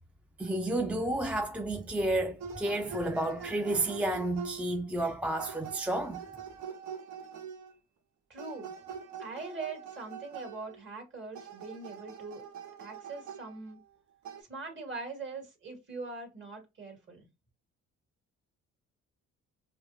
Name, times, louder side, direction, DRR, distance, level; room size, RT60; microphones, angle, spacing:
voice 1, 0.4-6.2, right 1 dB, 5° right, 0.3 m, -31 dB
sound 1, 2.4-4.8 5.4-7.8 8.4-10.8 11.3-13.9 14.3-14.4, right 6 dB, 75° right, 0.7 m, -44 dB
voice 2, 8.3-8.7 9.2-12.4 12.8-13.8 14.5-17.3, right 3 dB, 40° right, 1.8 m, -42 dB
4.8 x 2.0 x 2.7 m
cardioid pair, 90°, 30 cm